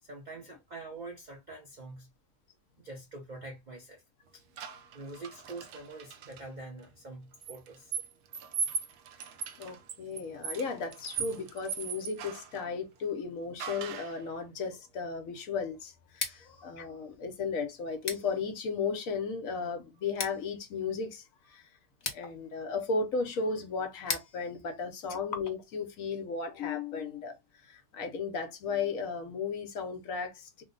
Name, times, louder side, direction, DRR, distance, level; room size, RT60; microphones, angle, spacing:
voice 1, 0.0-2.1 2.8-4.0 4.3-4.4 4.9-7.9 16.3-16.4, right 2 dB, 60° right, 0.4 m, -45 dB
sound 1, 4.6-6.4 7.4-12.6 13.6-14.2, right 6 dB, 80° right, 1.1 m, -39 dB
voice 2, 9.6-21.6 22.1-27.3 27.6-30.6, left 5 dB, 65° left, 1.1 m, -35 dB
Scissors, 16.0-25.9, left 4 dB, 45° left, 0.6 m, -43 dB
3.0 x 2.1 x 3.7 m
omnidirectional pair, 1.6 m